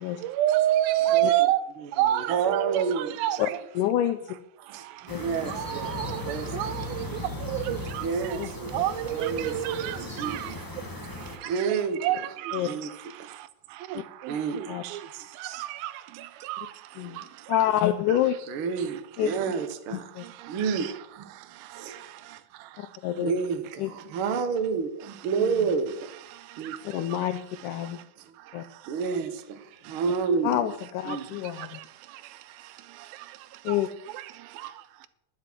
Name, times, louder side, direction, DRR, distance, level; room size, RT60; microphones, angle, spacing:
voice 1, 0.4-1.6 2.0-3.4 5.6-6.2 6.5-7.0 7.5-7.8 8.7-10.0 10.2-10.4 12.0-12.6 13.9-14.0 16.5-16.6, right 13 dB, 90° right, 2.6 m, -26 dB
voice 2, 2.0-3.2 4.7-5.9 6.2-6.5 8.0-8.7 9.1-9.6 10.2-10.4 11.4-12.0 12.6-12.9 13.2-13.4 14.3-15.0 15.4-15.7 18.5-20.0 20.5-21.2 21.7-22.1 23.2-26.1 26.6-26.7 28.9-30.7 31.0-31.3, right 5 dB, 75° right, 1.2 m, -29 dB
voice 3, 3.8-4.4 5.1-5.2 8.4-8.5 12.5-12.8 14.0-14.1 14.7-14.8 17.0-17.2 17.5-18.4 19.2-19.4 19.9-20.3 22.8-23.3 23.8-23.9 25.4-25.7 26.8-28.0 28.5-28.6 30.4-31.8 33.6-33.9, left 12 dB, 80° left, 1.9 m, -27 dB
sound 1, 5.1-11.4, left 1 dB, 20° left, 0.6 m, -37 dB
11.0 x 11.0 x 6.1 m
omnidirectional pair, 4.1 m